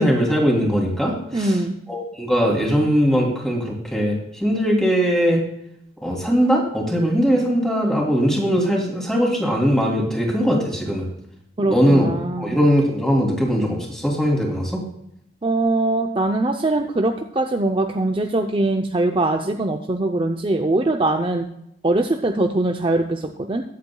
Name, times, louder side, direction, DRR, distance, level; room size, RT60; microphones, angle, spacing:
voice 1, 0.0-1.5 1.9-5.4 6.0-11.1 11.7-12.1 12.4-14.8, equal, 5° left, -2 dB, 2.9 m, -20 dB
voice 2, 1.3-1.8 11.6-12.6 15.4-21.5 21.8-23.6, right 2 dB, 30° right, 3 dB, 0.6 m, -22 dB
21.5 x 8.5 x 2.3 m, 0.75 s
head